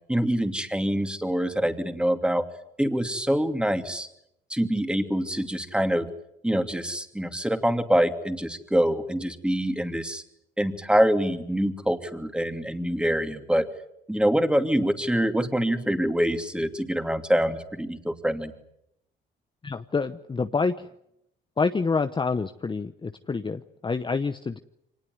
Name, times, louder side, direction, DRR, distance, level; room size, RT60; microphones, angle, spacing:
voice 1, 0.1-2.4 2.8-4.1 4.5-6.1 6.4-10.2 10.6-13.7 14.1-18.5, equal, 5° right, 7 dB, 2.7 m, -25 dB
voice 2, 19.6-20.9 21.6-24.6, left 4 dB, 25° left, 9 dB, 0.9 m, -27 dB
24.5 x 19.5 x 9.5 m, 0.79 s
cardioid pair, 90°, 20 cm